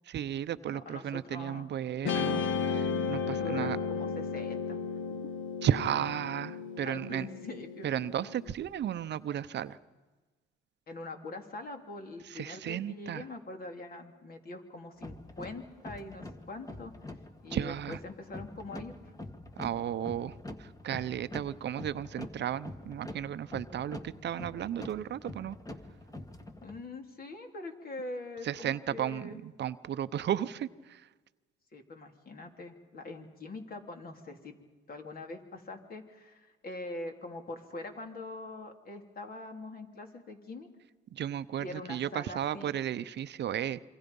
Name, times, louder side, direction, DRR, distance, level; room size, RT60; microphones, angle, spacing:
voice 1, 0.1-3.8 5.6-7.3 7.8-9.8 12.3-13.2 17.5-18.0 19.6-25.6 28.4-31.0 41.1-43.8, right 10 dB, 60° right, 14 dB, 0.7 m, -34 dB
voice 2, 0.7-1.7 3.3-4.8 6.8-7.9 10.9-16.9 17.4-19.1 26.6-29.4 31.7-34.5 34.9-40.7 41.6-42.7, left 2 dB, 50° left, 4 dB, 3.1 m, -43 dB
Guitar, 2.1-8.5, left 5 dB, 70° left, 1.4 m, -34 dB
sound 1, 15.0-26.8, left 1 dB, 15° left, 1.7 m, -45 dB
27.0 x 24.5 x 5.4 m, 1.3 s
cardioid pair, 90°, 20 cm